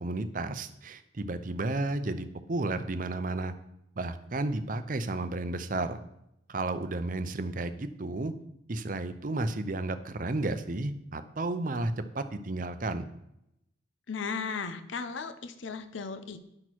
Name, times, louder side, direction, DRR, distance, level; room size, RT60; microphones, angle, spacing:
voice 1, 0.0-3.5 4.0-6.0 6.5-8.3 8.7-13.1, right 2 dB, 45° right, 10 dB, 0.6 m, -32 dB
voice 2, 14.1-16.4, left 5 dB, 80° left, 10 dB, 0.7 m, -36 dB
9.7 x 6.1 x 4.6 m, 0.82 s
head